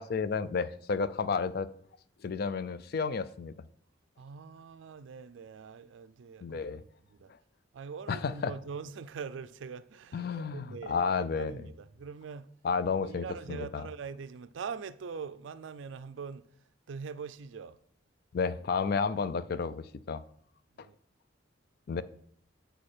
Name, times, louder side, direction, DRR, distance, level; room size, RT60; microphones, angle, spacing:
voice 1, 0.0-1.7 2.2-3.5 6.4-6.8 8.1-8.5 10.1-11.5 12.6-13.9 18.3-20.2 20.8-20.9 21.9-22.0, left 5 dB, 50° left, 0.4 m, -31 dB
voice 2, 4.2-7.3 7.7-12.5 13.0-16.5 16.9-17.8 20.8-21.0, right 5 dB, 70° right, 0.4 m, -43 dB
7.8 x 4.3 x 4.9 m
head